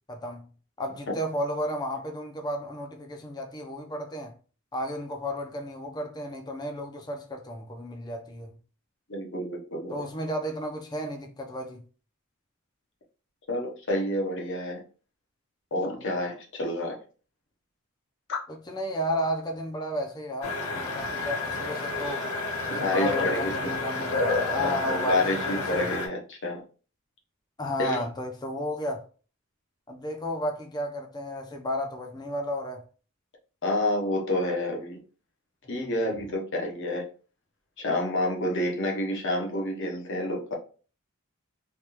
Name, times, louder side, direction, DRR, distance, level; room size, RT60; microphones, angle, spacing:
voice 1, 0.1-0.5 0.8-4.3 4.7-8.5 9.9-11.8 15.9-16.2 18.7-22.3 22.7-25.9 27.6-29.1 29.9-32.8 35.7-36.0, equal, 20° left, 0.5 m, -33 dB
voice 2, 9.1-10.0 13.5-14.8 15.7-17.0 18.3-18.4 22.8-23.7 24.6-26.6 27.8-28.0 33.6-35.0 35.7-37.1 37.8-40.5, left 1 dB, 55° left, 0.8 m, -29 dB
sound 1, 20.4-26.1, left 3 dB, 85° left, 0.7 m, -30 dB
3.3 x 2.3 x 2.9 m
head